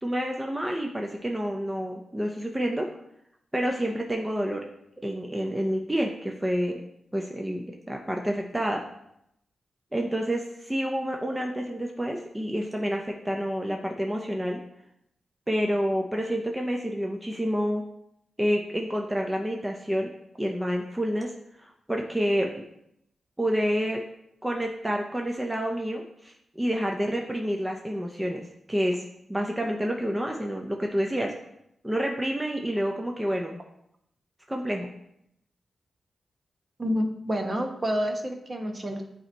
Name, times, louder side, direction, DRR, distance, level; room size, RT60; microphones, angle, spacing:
voice 1, 0.0-2.9 3.5-4.7 5.0-6.8 7.1-8.8 9.9-14.6 15.5-17.8 18.4-20.1 20.4-21.3 21.6-22.5 23.4-24.0 24.4-28.4 28.7-29.0 29.3-31.3 31.8-33.6 34.5-34.9, equal, 10° right, 1 dB, 0.7 m, -28 dB
voice 2, 36.8-39.0, equal, 35° right, 3 dB, 1.0 m, -28 dB
8.5 x 3.0 x 4.5 m, 0.77 s
cardioid pair, 75°, 0 cm